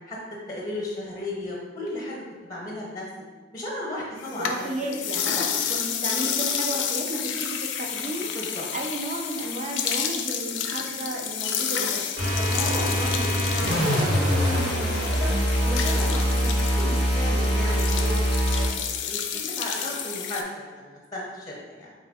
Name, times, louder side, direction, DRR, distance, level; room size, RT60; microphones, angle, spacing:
voice 1, 0.5-3.1 3.5-4.9 5.2-5.5 8.3-8.6 12.4-15.3 15.6-18.2 18.5-21.9, left 1 dB, 20° left, -3 dB, 0.6 m, -35 dB
sound 1, 4.2-20.4, left 8 dB, 80° left, 0.4 m, -30 dB
voice 2, 4.3-5.3 5.7-8.3 8.7-12.0, right 1 dB, 40° right, 1 dB, 0.5 m, -33 dB
sound 2, 12.2-18.7, equal, 85° right, 1.2 m, -23 dB
4.1 x 2.5 x 3.4 m, 1.3 s
head